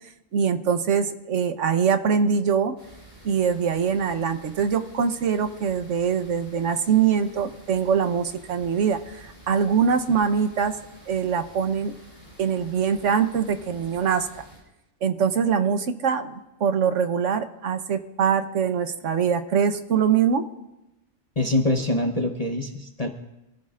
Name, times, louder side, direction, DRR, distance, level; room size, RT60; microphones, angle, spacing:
voice 1, 0.3-2.8 3.2-10.7 11.1-11.9 12.4-14.3 15.0-20.4, right 7 dB, 65° right, 8 dB, 1.3 m, -23 dB
sound 1, 2.8-14.6, right 1 dB, 45° right, 7.0 m, -49 dB
voice 2, 21.4-23.1, left 1 dB, 30° left, 2 dB, 1.0 m, -24 dB
26.0 x 15.0 x 2.5 m, 0.95 s
omnidirectional pair, 1.4 m